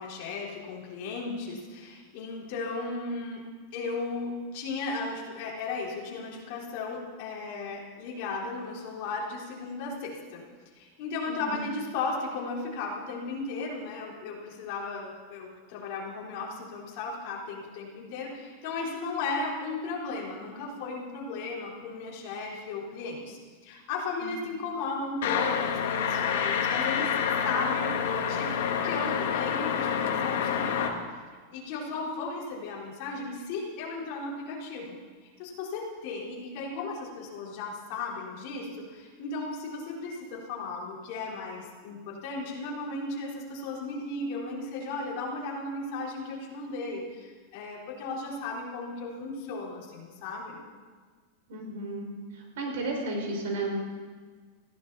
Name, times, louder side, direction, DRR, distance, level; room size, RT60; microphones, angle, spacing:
voice 1, 0.0-3.4 3.7-10.4 10.8-23.4 23.6-27.2 27.4-31.0 31.5-34.9 35.4-50.6, left 3 dB, 45° left, -4 dB, 4.1 m, -35 dB
voice 2, 11.3-11.6 24.2-24.3 51.5-52.1 52.3-53.8, right 2 dB, 75° right, 1 dB, 5.5 m, -33 dB
sound 1, 25.2-30.9, left 7 dB, 70° left, 1.8 m, -28 dB
21.0 x 15.5 x 4.2 m, 1.5 s
supercardioid pair, 175°, 0 cm